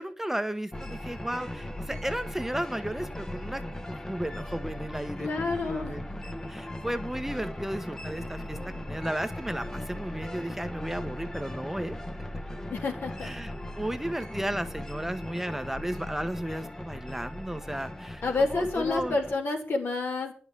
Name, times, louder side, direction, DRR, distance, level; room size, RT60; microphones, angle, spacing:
voice 1, 0.0-3.6 3.9-6.1 6.5-12.0 13.2-19.2, right 1 dB, 10° right, 9 dB, 1.0 m, -34 dB
sound 1, 0.7-19.4, left 1 dB, 15° left, 1.1 m, -38 dB
voice 2, 5.2-6.0 12.7-13.3 18.2-20.3, left 3 dB, 70° left, 2 dB, 3.3 m, -29 dB
9.9 x 7.2 x 8.2 m, 0.43 s
cardioid pair, 80°, 4 cm